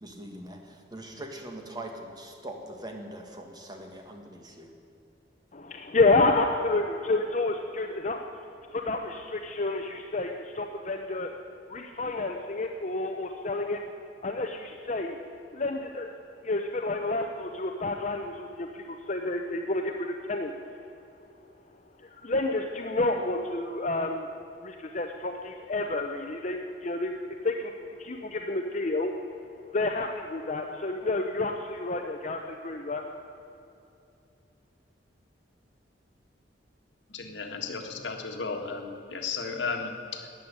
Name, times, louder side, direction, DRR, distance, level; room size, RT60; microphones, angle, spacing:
voice 1, 0.0-4.7, right 1 dB, 20° right, 3 dB, 1.7 m, -42 dB
voice 2, 5.5-8.2 8.7-11.3 11.7-13.8 14.2-15.2 15.5-16.1 16.4-20.5 22.0-24.3 24.6-27.1 27.4-27.7 28.0-29.1 29.7-33.0, left 2 dB, 40° left, 3 dB, 0.8 m, -29 dB
voice 3, 37.1-40.3, left 4 dB, 80° left, 3 dB, 1.7 m, -34 dB
13.5 x 9.1 x 10.0 m, 2.8 s
head